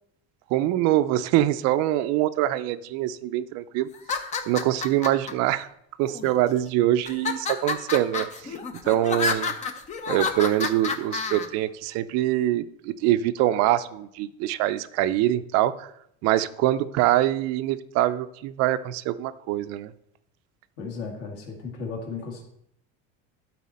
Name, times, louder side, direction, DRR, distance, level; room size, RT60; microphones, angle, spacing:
voice 1, 0.5-3.9 4.2-5.7 6.0-8.6 8.8-9.5 10.1-15.9 16.2-19.9, right 14 dB, 50° right, 13 dB, 0.5 m, -24 dB
sound 1, 3.9-5.3 6.0-6.6 7.1-11.5, left 4 dB, 20° left, 0.5 m, -29 dB
voice 2, 20.8-22.4, left 4 dB, 45° left, 0 dB, 2.0 m, -35 dB
12.5 x 4.2 x 4.2 m, 0.74 s
cardioid pair, 170°, 33 cm